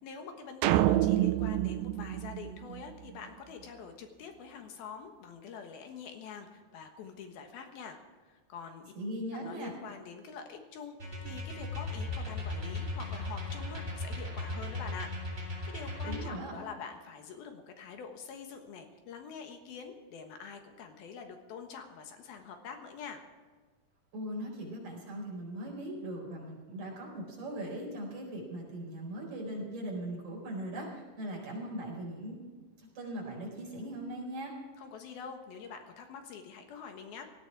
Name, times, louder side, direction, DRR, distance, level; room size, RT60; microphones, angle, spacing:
voice 1, 0.0-8.9 9.3-23.2 34.8-37.2, left 6 dB, 75° left, 5 dB, 3.2 m, -45 dB
sound 1, 0.6-3.1, right 14 dB, 90° right, 2.7 m, -27 dB
voice 2, 8.9-9.7 16.0-16.5 24.1-32.4 32.8-34.5, right 1 dB, 45° right, -2 dB, 5.6 m, -39 dB
sound 2, 11.0-16.3, left 2 dB, 20° right, 3.9 m, -37 dB
18.0 x 14.5 x 4.8 m, 1.4 s
omnidirectional pair, 4.5 m